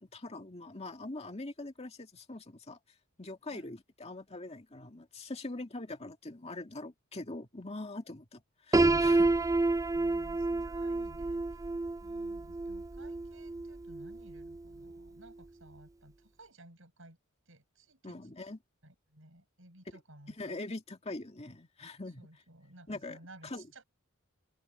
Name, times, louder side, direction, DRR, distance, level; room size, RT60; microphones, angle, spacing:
voice 1, 0.0-2.8 3.2-9.3 18.0-18.6 20.4-22.3 22.9-23.2 23.4-23.6, left 2 dB, 30° left, 2.1 m, -43 dB
Piano, 8.7-14.6, right 2 dB, 15° right, 0.3 m, -29 dB
voice 2, 9.9-11.7 12.0-17.2 17.5-18.3 18.8-20.6 22.2-23.8, right 1 dB, 70° right, 7.7 m, -56 dB
head